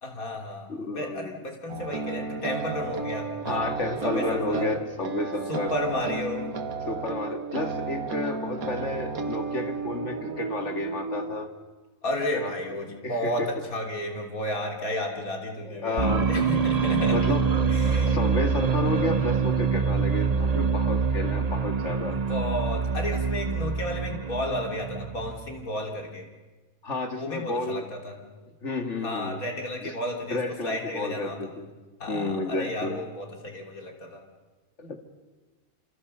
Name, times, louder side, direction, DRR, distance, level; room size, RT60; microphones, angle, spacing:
voice 1, 0.0-3.6 4.0-4.7 5.5-6.5 12.0-17.3 17.7-18.2 22.1-26.3 27.1-28.2 29.0-31.4 32.0-34.2, left 1 dB, 80° left, 2 dB, 3.8 m, -32 dB
voice 2, 0.7-1.4 3.5-5.7 6.9-11.5 12.3-12.5 13.0-13.5 15.6-16.4 17.1-17.5 18.1-22.2 26.8-27.9 28.6-29.4 29.8-29.9 30.3-31.7 32.1-33.0 34.8-35.0, left 2 dB, 55° left, 6 dB, 2.3 m, -31 dB
sound 1, 1.7-11.5, right 4 dB, 85° right, 1.9 m, -33 dB
sound 2, 16.0-25.6, right 5 dB, 30° right, 0.9 m, -25 dB
28.0 x 27.0 x 5.6 m, 1.2 s
omnidirectional pair, 1.5 m